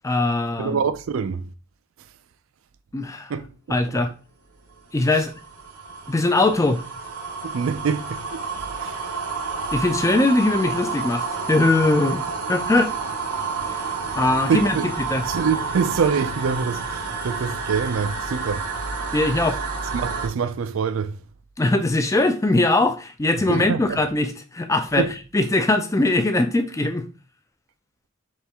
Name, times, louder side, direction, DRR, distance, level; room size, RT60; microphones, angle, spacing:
voice 1, 0.0-0.8 2.9-3.3 3.7-4.1 4.9-5.3 6.1-6.8 9.7-12.2 12.5-12.9 14.2-15.2 19.1-19.6 21.6-25.1 25.3-27.1, left 2 dB, 15° left, 0.4 m, -21 dB
voice 2, 0.6-1.5 3.3-4.0 7.4-8.4 8.8-9.0 14.5-14.9 15.3-18.6 20.0-21.2 23.5-24.0 25.0-25.1, right 6 dB, 65° right, 0.4 m, -25 dB
sound 1, 4.7-20.3, right 4 dB, 85° right, 0.7 m, -30 dB
4.3 x 3.3 x 3.5 m
head